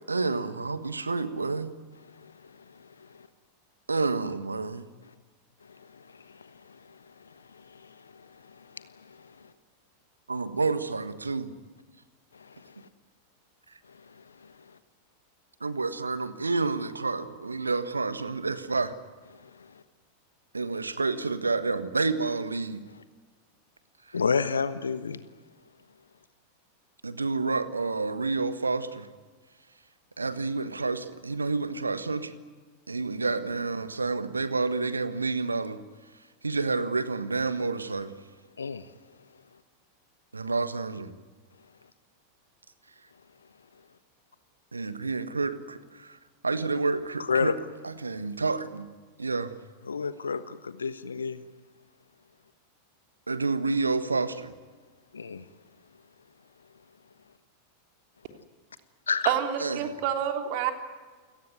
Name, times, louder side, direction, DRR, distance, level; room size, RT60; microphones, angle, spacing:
voice 1, 0.1-1.7 3.9-4.8 10.3-11.5 15.6-18.9 20.5-22.9 24.1-24.2 27.0-29.1 30.2-32.3 32.9-35.8 36.4-38.1 40.3-41.1 44.7-46.2 46.4-47.6 47.8-48.9 49.2-49.5 53.3-54.5 59.6-59.8, right 3 dB, 80° right, 13 dB, 1.5 m, -29 dB
voice 2, 2.1-3.3 5.6-9.5 12.3-12.9 13.9-14.5 19.3-19.8 24.1-25.2 38.6-38.9 47.2-47.5 49.9-51.4 55.1-55.5 59.1-59.3, left 5 dB, 75° left, 13 dB, 1.2 m, -33 dB
voice 3, 59.2-60.7, right 10 dB, 45° right, 5 dB, 3.3 m, -28 dB
28.5 x 18.0 x 9.5 m, 1.4 s
figure-of-eight pair, 90°, 0 cm